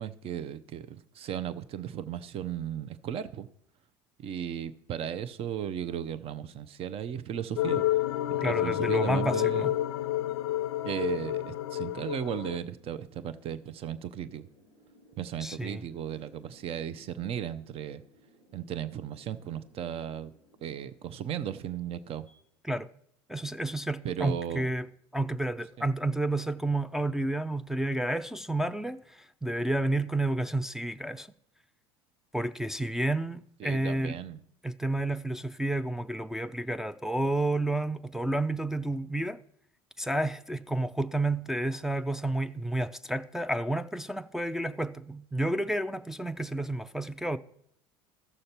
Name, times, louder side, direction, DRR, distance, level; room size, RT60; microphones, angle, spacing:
voice 1, 0.0-3.5 4.2-7.8 8.4-9.7 10.9-14.4 15.2-18.0 18.5-20.3 20.6-22.3 24.0-24.7 25.8-25.9 33.6-34.4, right 9 dB, 45° right, 0.7 m, -36 dB
sound 1, 6.8-22.4, left 1 dB, 90° right, 5.2 m, -64 dB
sound 2, 7.6-12.6, left 14 dB, 80° left, 0.4 m, -29 dB
voice 2, 8.4-9.8 15.4-15.8 22.6-22.9 23.3-24.9 25.1-31.3 32.3-34.2 34.6-39.4 40.0-47.4, right 1 dB, 5° right, 0.4 m, -30 dB
14.0 x 6.5 x 4.3 m
hypercardioid pair, 75°, 14 cm